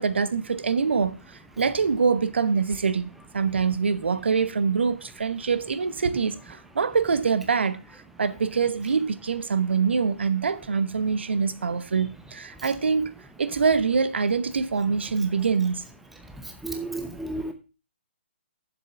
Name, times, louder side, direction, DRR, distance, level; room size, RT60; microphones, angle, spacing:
voice 1, 0.0-13.1 13.4-15.8, right 5 dB, 70° right, 1.0 m, -25 dB
voice 2, 16.2-17.5, right 2 dB, 5° right, 0.8 m, -33 dB
7.3 x 7.0 x 5.9 m
figure-of-eight pair, 140°, 6 cm